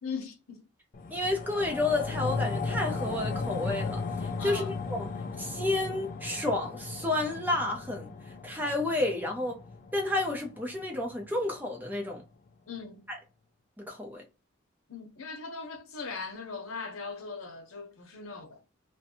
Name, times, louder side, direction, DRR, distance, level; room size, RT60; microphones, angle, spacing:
voice 1, 0.0-0.7 4.4-4.8 12.7-13.1 14.9-18.6, left 4 dB, 90° left, 0.8 m, -39 dB
sound 1, 0.9-11.5 11.9-12.0, left 4 dB, 40° left, 0.4 m, -36 dB
voice 2, 1.1-5.1 5.4-8.1 8.4-9.6 9.9-12.2 13.1-13.2 13.8-14.2, left 2 dB, 10° right, 0.6 m, -31 dB
2.6 x 2.2 x 2.6 m
head